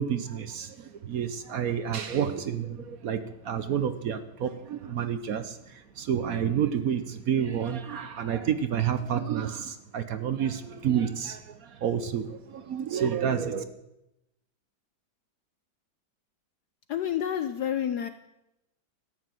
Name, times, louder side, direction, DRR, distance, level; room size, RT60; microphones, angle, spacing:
voice 1, 0.0-13.6, right 8 dB, 60° right, 10 dB, 1.0 m, -29 dB
voice 2, 16.9-18.1, left 9 dB, 65° left, 10 dB, 1.1 m, -29 dB
13.5 x 9.6 x 7.6 m, 0.88 s
omnidirectional pair, 2.2 m